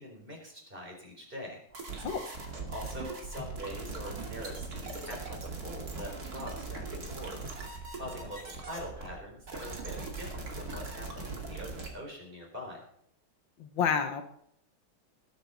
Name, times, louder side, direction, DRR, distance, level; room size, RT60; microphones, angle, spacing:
voice 1, 0.0-1.6 2.7-7.4 8.0-12.8, equal, 25° right, 0 dB, 4.4 m, -43 dB
sound 1, 1.7-11.9, right 3 dB, 50° right, 2.9 m, -40 dB
voice 2, 13.6-14.2, left 7 dB, 75° left, 7 dB, 1.8 m, -29 dB
20.0 x 8.8 x 4.1 m, 0.70 s
omnidirectional pair, 2.1 m